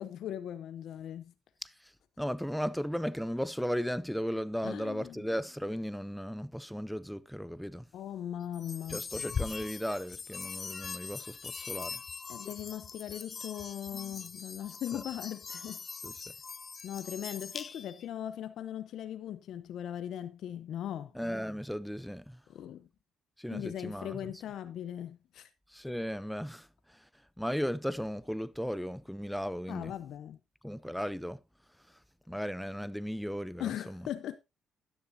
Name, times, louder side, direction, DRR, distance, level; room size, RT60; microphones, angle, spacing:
voice 1, 0.0-1.3 4.6-5.2 7.9-9.0 12.3-15.8 16.8-21.1 22.5-22.9 23.5-25.5 29.7-30.4 33.6-34.4, left 10 dB, 75° left, 0.8 m, -39 dB
voice 2, 1.6-1.9 2.2-7.8 8.9-12.0 14.9-15.0 16.0-16.1 21.1-22.4 23.4-24.2 25.7-27.0 27.4-29.9 30.6-31.4 32.3-34.0, equal, ahead, 0.5 m, -36 dB
sound 1, 8.5-18.1, left 5 dB, 40° left, 0.6 m, -41 dB
12.5 x 10.0 x 2.8 m
cardioid pair, 90°, 0 cm